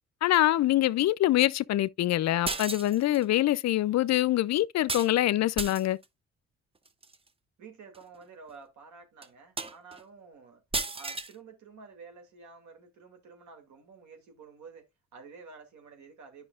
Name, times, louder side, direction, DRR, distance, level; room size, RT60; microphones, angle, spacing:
voice 1, 0.2-6.0, left 14 dB, 60° left, 0.5 m, -25 dB
sound 1, 2.4-3.2 4.9-5.1 5.6-6.0 6.8-7.1 7.9-8.0 8.5-8.6 9.2-9.3 9.6-10.0 10.7-11.3, right 3 dB, 20° right, 0.7 m, -33 dB
voice 2, 7.6-10.6 10.9-16.5, right 5 dB, 70° right, 2.5 m, -50 dB
9.8 x 5.6 x 2.4 m
cardioid pair, 90°, 30 cm